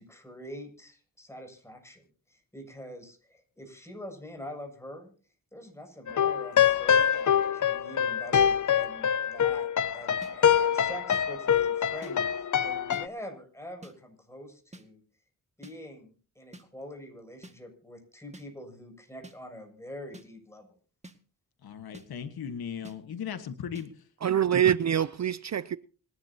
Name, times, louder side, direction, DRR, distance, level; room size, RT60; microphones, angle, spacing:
voice 1, 0.0-5.1 5.5-9.7 9.9-15.0 15.6-20.8, equal, 5° left, 7.0 m, -45 dB
sound 1, 6.1-13.1, left 8 dB, 55° left, 0.8 m, -25 dB
sound 2, 10.2-10.3 11.1-11.2 12.0-12.1 12.9-13.0 13.8-13.9 14.7-14.8 15.6-15.7 16.5-16.6 17.4-17.6 18.3-18.5 19.2-19.4 20.1-20.3 21.0-21.2 21.9-22.1 22.8-23.0 23.7-23.9, right 1 dB, 20° right, 2.0 m, -47 dB
voice 2, 21.6-24.0, left 7 dB, 85° left, 1.6 m, -37 dB
voice 3, 24.2-25.8, right 10 dB, 50° right, 0.6 m, -25 dB
26.5 x 11.5 x 2.9 m
cardioid pair, 75°, 36 cm